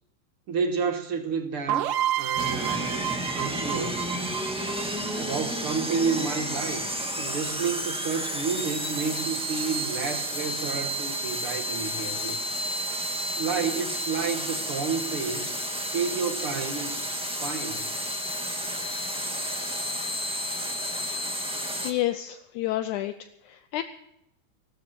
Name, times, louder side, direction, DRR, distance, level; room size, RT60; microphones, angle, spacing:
voice 1, 0.5-4.1 5.1-6.9 7.2-12.4 13.4-15.5 15.9-17.1 17.4-17.9, right 5 dB, 55° right, 1.9 m, -30 dB
sound 1, 1.7-5.4, right 12 dB, 90° right, 2.5 m, -30 dB
sound 2, 2.4-21.9, equal, 5° right, 0.5 m, -31 dB
voice 2, 21.8-23.8, left 14 dB, 75° left, 2.0 m, -30 dB
18.5 x 13.0 x 4.4 m
omnidirectional pair, 3.7 m